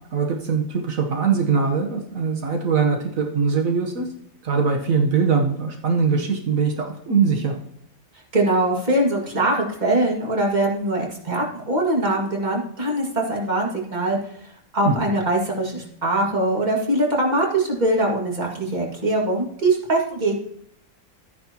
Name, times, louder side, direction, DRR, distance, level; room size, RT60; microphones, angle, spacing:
voice 1, 0.1-4.1 4.4-7.5 14.8-15.0, right 5 dB, 75° right, 2 dB, 1.5 m, -22 dB
voice 2, 8.3-14.2 14.7-20.3, right 1 dB, 30° right, -1 dB, 2.1 m, -22 dB
13.0 x 9.6 x 2.9 m, 0.70 s
omnidirectional pair, 1.4 m